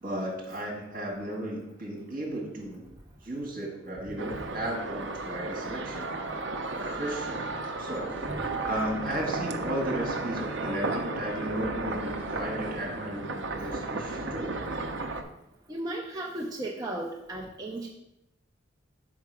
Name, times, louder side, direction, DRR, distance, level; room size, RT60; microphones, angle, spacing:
voice 1, 0.0-2.9 3.2-6.1 6.7-7.3 7.8-14.6, right 1 dB, 45° right, -1 dB, 1.8 m, -35 dB
sound 1, 4.2-15.2, right 3 dB, 70° right, 0.6 m, -34 dB
voice 2, 15.7-17.9, right 1 dB, 20° right, -2 dB, 0.5 m, -35 dB
5.9 x 4.7 x 4.7 m, 0.84 s
head